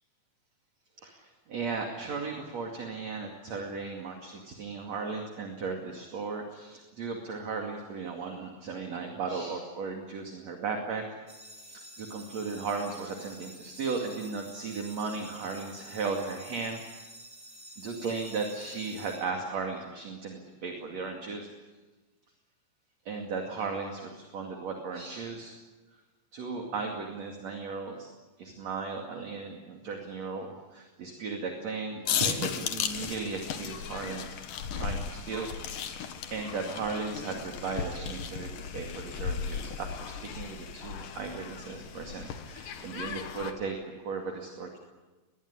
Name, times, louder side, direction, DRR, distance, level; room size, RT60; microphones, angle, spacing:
voice 1, 1.0-11.2 11.6-16.8 17.8-21.5 23.0-25.6 26.3-28.1 28.4-34.4 34.7-35.6 36.3-44.8, right 4 dB, 50° right, 2 dB, 3.4 m, -36 dB
sound 1, 11.3-19.9, right 1 dB, 15° right, 2.6 m, -49 dB
sound 2, 32.1-43.5, left 7 dB, 70° left, 3.0 m, -36 dB
23.0 x 20.0 x 9.9 m, 1.2 s
omnidirectional pair, 4.0 m